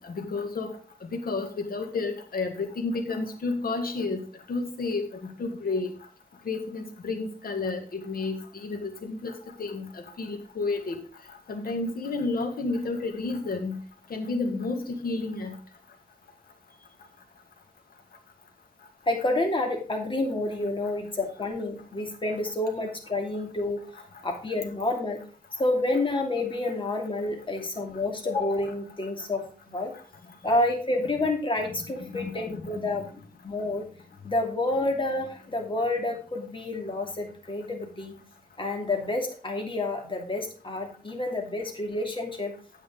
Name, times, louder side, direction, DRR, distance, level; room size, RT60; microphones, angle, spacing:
voice 1, 0.0-4.2 4.5-5.9 6.5-11.0 11.5-13.8 14.1-15.6 32.1-33.0, left 3 dB, 75° left, 5 dB, 1.9 m, -31 dB
voice 2, 19.1-23.8 24.2-25.2 25.6-29.9 30.4-33.0 33.4-33.9 34.2-38.1 38.6-42.5, left 2 dB, 35° left, 2 dB, 2.7 m, -29 dB
9.2 x 8.9 x 3.8 m, 0.40 s
cardioid pair, 80°, 15 cm